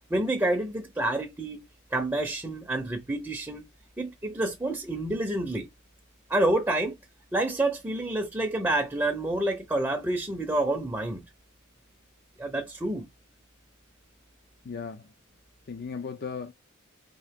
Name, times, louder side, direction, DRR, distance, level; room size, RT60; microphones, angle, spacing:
voice 1, 0.1-1.6 1.9-3.7 4.0-5.7 6.3-6.9 7.3-11.2 12.4-13.1, right 1 dB, 10° right, 0.6 m, -28 dB
voice 2, 14.6-15.1 15.7-16.5, left 5 dB, 45° left, 0.4 m, -36 dB
3.8 x 2.4 x 3.5 m
head